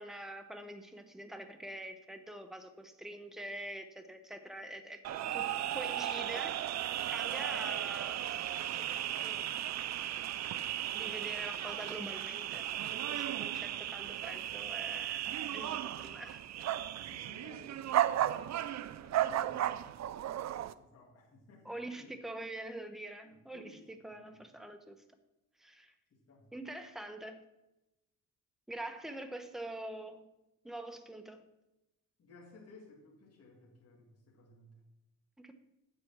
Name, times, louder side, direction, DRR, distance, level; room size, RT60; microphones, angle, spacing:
voice 1, 0.0-5.5 5.7-6.6 7.1-8.2 8.8-9.5 10.9-12.7 12.9-16.8 21.6-25.0 25.6-25.9 26.5-27.4 28.7-30.2 30.6-31.4 35.4-35.5, right 1 dB, ahead, 6 dB, 1.0 m, -45 dB
sound 1, 5.0-20.7, right 12 dB, 55° right, 0.5 m, -35 dB
voice 2, 16.9-18.3 19.0-20.0 20.7-22.2 23.2-23.9 24.2-24.3 26.1-26.5 32.2-34.8, left 3 dB, 50° left, -3 dB, 2.1 m, -58 dB
8.8 x 8.0 x 6.0 m, 0.92 s
cardioid pair, 115°, 33 cm